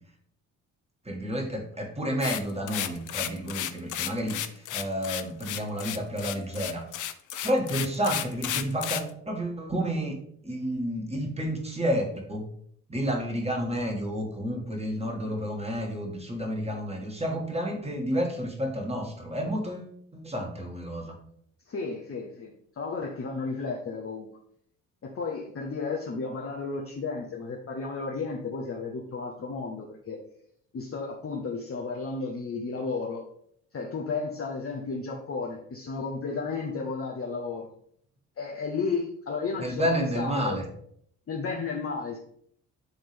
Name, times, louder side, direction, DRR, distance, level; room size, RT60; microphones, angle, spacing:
voice 1, 1.1-6.8 7.4-10.2 10.4-12.4 12.9-21.1 39.6-40.6, equal, 15° right, 1 dB, 2.1 m, -30 dB
sound 1, 2.2-9.1, left 11 dB, 50° left, 0.6 m, -33 dB
voice 2, 21.7-24.3 25.0-30.2 30.7-33.2 33.7-37.7 38.4-40.6 41.3-42.2, left 4 dB, 35° left, -1 dB, 1.1 m, -33 dB
10.5 x 3.6 x 3.5 m, 0.67 s
hypercardioid pair, 50°, 39 cm